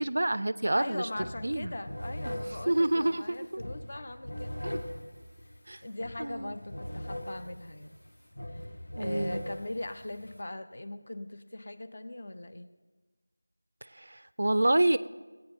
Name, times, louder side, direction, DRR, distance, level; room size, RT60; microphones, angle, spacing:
voice 1, 0.0-1.1 1.4-1.7 2.3-2.4 2.7-3.6 4.6-4.8 5.7-5.8 6.2-6.5 9.0-9.4 13.9-15.0, right 1 dB, 50° right, 16 dB, 0.4 m, -28 dB
voice 2, 0.7-4.6 5.8-8.0 8.5-8.7 9.0-12.7, left 1 dB, 30° left, 8 dB, 0.6 m, -40 dB
sound 1, 0.8-0.9 1.2-10.4, left 1 dB, 65° left, 1.2 m, -41 dB
18.0 x 8.8 x 3.6 m, 1.3 s
figure-of-eight pair, 175°, 0 cm